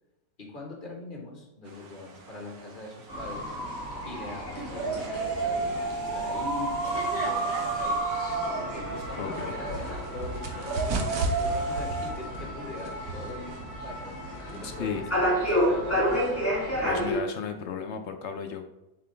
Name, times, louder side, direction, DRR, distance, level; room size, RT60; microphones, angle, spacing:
voice 1, 0.4-3.6 4.0-8.1 8.5-14.1 14.5-16.4, left 2 dB, 30° left, 0 dB, 1.6 m, -42 dB
sound 1, 1.7-12.1, right 5 dB, 85° right, 1.8 m, -34 dB
sound 2, 3.1-17.2, equal, 10° left, 1.8 m, -31 dB
sound 3, 8.8-15.0, right 2 dB, 65° right, 1.3 m, -36 dB
voice 2, 9.2-9.5 14.6-15.0 16.8-18.7, left 6 dB, 60° left, 5 dB, 0.7 m, -34 dB
7.7 x 4.7 x 3.4 m, 0.95 s
omnidirectional pair, 1.8 m